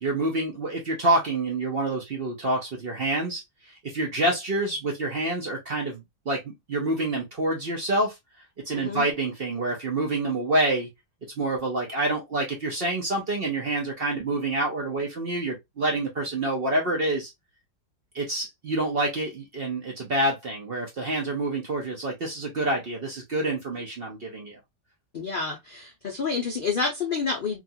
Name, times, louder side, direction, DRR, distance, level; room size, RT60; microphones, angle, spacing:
voice 1, 0.0-8.2 8.6-10.9 11.4-17.3 18.1-24.6, right 2 dB, 55° right, 0.6 m, -27 dB
voice 2, 8.7-9.1 25.1-27.6, left 4 dB, 80° left, 0.4 m, -29 dB
2.9 x 2.4 x 2.6 m
omnidirectional pair, 1.7 m